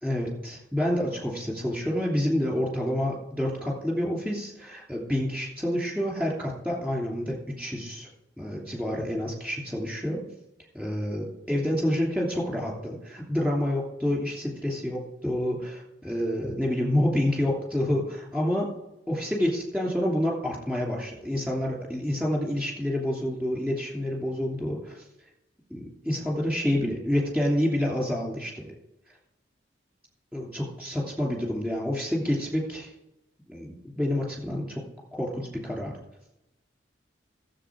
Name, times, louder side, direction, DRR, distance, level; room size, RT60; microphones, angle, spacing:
voice 1, 0.0-8.1 8.4-10.2 10.7-18.7 19.1-25.0 25.7-28.7 30.3-32.9 33.5-34.8 35.1-35.9, left 1 dB, 10° right, -2 dB, 2.9 m, -28 dB
12.5 x 7.6 x 4.8 m, 0.89 s
head